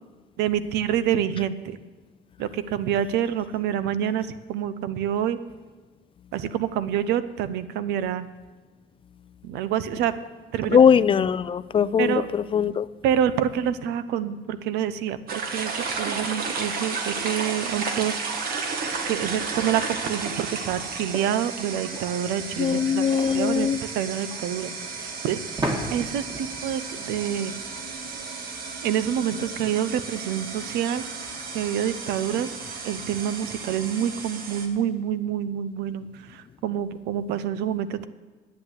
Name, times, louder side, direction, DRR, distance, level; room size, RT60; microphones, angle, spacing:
voice 1, 0.4-1.8 2.4-5.4 6.3-8.3 9.4-10.1 10.5-10.8 12.0-12.3 13.0-18.4 19.1-24.7 25.0-25.6 25.9-27.5 28.8-31.0 31.5-32.5 32.8-38.1, right 10 dB, 85° right, 14 dB, 0.7 m, -27 dB
voice 2, 10.7-12.9 22.6-23.8, left 7 dB, 30° left, 16 dB, 0.4 m, -20 dB
sound 1, 15.3-34.7, right 4 dB, 60° right, 1.6 m, -33 dB
sound 2, 25.6-28.2, right 1 dB, 25° right, 2.3 m, -33 dB
10.5 x 8.1 x 7.9 m, 1.3 s
cardioid pair, 110°, 17 cm